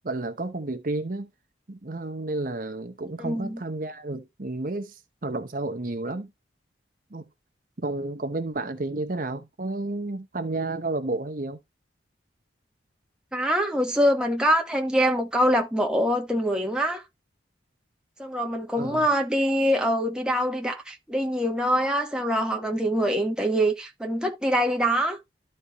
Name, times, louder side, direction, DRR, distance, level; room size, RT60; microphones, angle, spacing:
voice 1, 0.0-1.3 1.7-6.3 7.1-7.3 7.8-11.6 18.8-19.1, right 2 dB, 45° right, 0.9 m, -31 dB
voice 2, 3.2-3.6 13.3-17.0 18.2-25.2, equal, 5° right, 1.2 m, -24 dB
12.5 x 4.2 x 3.1 m
head